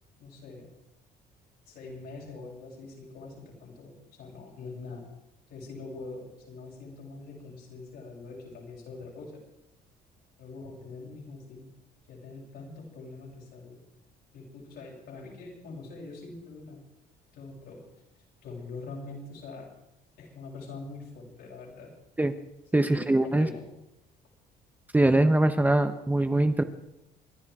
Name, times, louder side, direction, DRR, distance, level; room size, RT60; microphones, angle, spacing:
voice 1, 0.2-0.7 1.7-5.1 5.5-9.4 10.4-11.7 12.1-13.8 14.3-16.8 17.3-17.8 18.4-19.7 20.2-21.9 22.8-23.6, left 3 dB, 75° left, -3 dB, 7.2 m, -43 dB
voice 2, 22.7-23.5 24.9-26.6, right 1 dB, 10° right, 8 dB, 1.0 m, -22 dB
27.0 x 11.0 x 4.8 m, 0.85 s
cardioid pair, 110°, 17 cm